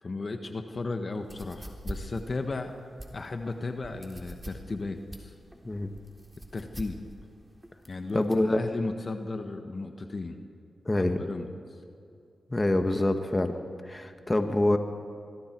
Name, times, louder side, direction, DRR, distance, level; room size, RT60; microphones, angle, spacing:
voice 1, 0.0-2.7 3.1-5.3 6.5-7.0 7.9-10.4 10.9-11.8, left 3 dB, 50° left, 5 dB, 1.6 m, -35 dB
sound 1, 1.2-8.5, right 1 dB, 15° right, 3.7 m, -43 dB
voice 2, 8.1-8.6 10.9-11.2 12.5-13.5 13.9-14.8, left 1 dB, 25° left, 6 dB, 1.8 m, -25 dB
26.0 x 21.5 x 4.7 m, 2.5 s
cardioid pair, 55°, 0 cm